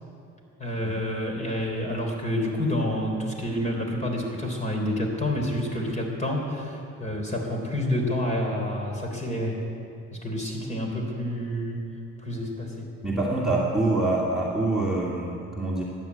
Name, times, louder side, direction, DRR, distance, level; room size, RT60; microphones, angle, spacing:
voice 1, 0.6-9.6 10.1-11.8 12.2-12.9, left 1 dB, 25° left, 1 dB, 3.6 m, -28 dB
voice 2, 13.0-15.8, right 2 dB, ahead, -6 dB, 2.3 m, -25 dB
15.0 x 10.5 x 8.5 m, 2.6 s
cardioid pair, 105°, 29 cm